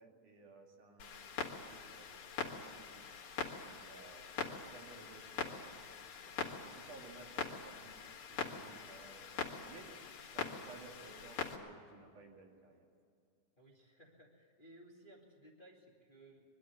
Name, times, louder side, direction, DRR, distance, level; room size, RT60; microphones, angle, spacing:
voice 1, 0.0-3.3 3.6-8.0 8.3-9.9 10.3-12.9, right 3 dB, 75° right, 1 dB, 3.9 m, -57 dB
Clock, 1.0-11.6, left 7 dB, 70° left, 3.2 m, -43 dB
voice 2, 9.6-10.2 13.6-16.4, right 1 dB, 20° left, -1 dB, 1.9 m, -60 dB
23.0 x 12.0 x 9.6 m, 2.3 s
omnidirectional pair, 3.6 m